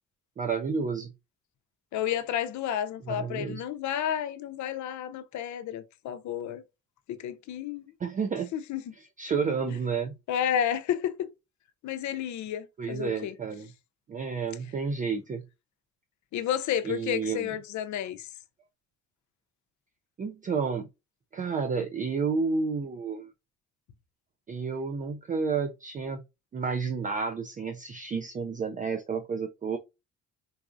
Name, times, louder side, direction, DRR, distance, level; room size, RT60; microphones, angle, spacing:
voice 1, 0.4-1.1 3.1-3.6 8.0-8.5 9.2-10.2 12.8-13.7 14.1-15.4 16.8-17.5 20.2-20.9 21.3-23.3 24.5-26.2 26.5-29.8, right 5 dB, 25° right, 0.3 m, -30 dB
voice 2, 1.9-6.6 7.1-7.9 8.5-8.8 10.3-11.3 11.8-13.3 16.3-18.3, left 10 dB, 70° left, 0.6 m, -31 dB
4.0 x 2.4 x 2.5 m
cardioid pair, 90°, 30 cm